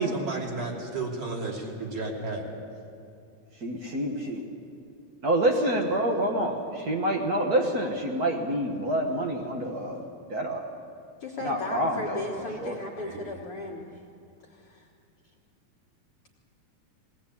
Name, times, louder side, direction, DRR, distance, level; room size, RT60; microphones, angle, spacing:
voice 1, 0.1-2.4 12.3-12.6 13.0-13.4, right 3 dB, 45° right, -3 dB, 3.7 m, -34 dB
voice 2, 3.5-4.4 5.2-10.7 11.4-12.2 12.6-12.8, right 1 dB, 80° right, 1 dB, 0.8 m, -27 dB
voice 3, 11.2-14.0 14.4-14.9, left 2 dB, 55° left, -2 dB, 1.8 m, -36 dB
20.5 x 18.0 x 8.5 m, 2.5 s
omnidirectional pair, 4.0 m